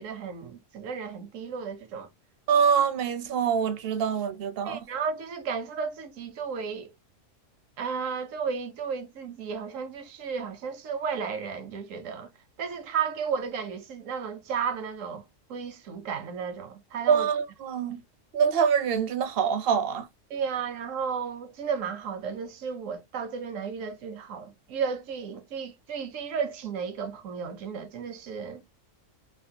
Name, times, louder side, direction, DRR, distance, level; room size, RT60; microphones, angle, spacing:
voice 1, 0.0-2.1 4.7-6.9 7.8-12.3 12.6-17.3 20.3-28.6, right 6 dB, 80° right, 1.1 m, -33 dB
voice 2, 2.5-4.8 17.1-18.0 18.3-20.1, right 7 dB, 60° right, 0.6 m, -25 dB
3.3 x 2.3 x 2.7 m
omnidirectional pair, 1.3 m